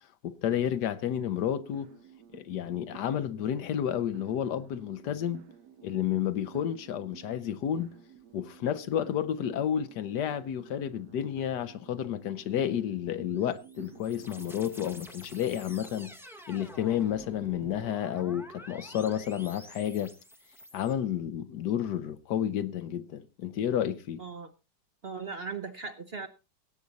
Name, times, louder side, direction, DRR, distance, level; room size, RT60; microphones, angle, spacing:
voice 1, 0.2-1.9 2.3-5.4 5.8-7.9 8.3-16.1 16.5-20.1 20.7-24.2, left 10 dB, 75° left, 1.4 m, -31 dB
sound 1, 1.1-14.9, right 8 dB, 75° right, 1.6 m, -52 dB
sound 2, 13.3-20.9, equal, ahead, 0.6 m, -49 dB
voice 2, 24.2-24.5 25.0-26.3, right 5 dB, 45° right, 0.8 m, -38 dB
17.0 x 8.4 x 4.0 m
omnidirectional pair, 1.9 m